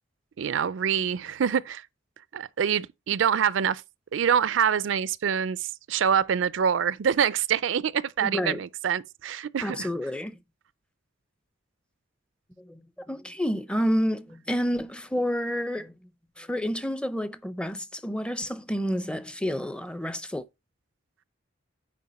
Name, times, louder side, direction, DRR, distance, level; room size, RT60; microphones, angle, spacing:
voice 1, 0.4-1.8 2.3-3.8 4.1-9.9, right 8 dB, 70° right, 0.4 m, -25 dB
voice 2, 8.2-8.6 9.6-10.4 12.6-12.8 13.1-15.9 16.4-20.4, equal, 5° left, 0.5 m, -29 dB
9.5 x 4.6 x 4.2 m
head